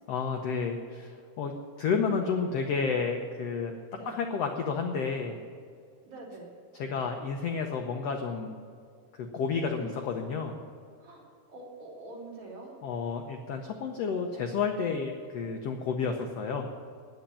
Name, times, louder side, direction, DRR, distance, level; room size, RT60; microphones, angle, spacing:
voice 1, 0.1-3.7 4.1-5.4 6.7-8.6 9.1-10.5 12.8-16.8, left 5 dB, 75° left, 3 dB, 1.4 m, -31 dB
voice 2, 6.1-6.5 9.7-9.9 11.0-12.7, right 2 dB, 40° right, -5 dB, 4.2 m, -45 dB
10.5 x 9.3 x 10.0 m, 2.2 s
omnidirectional pair, 4.0 m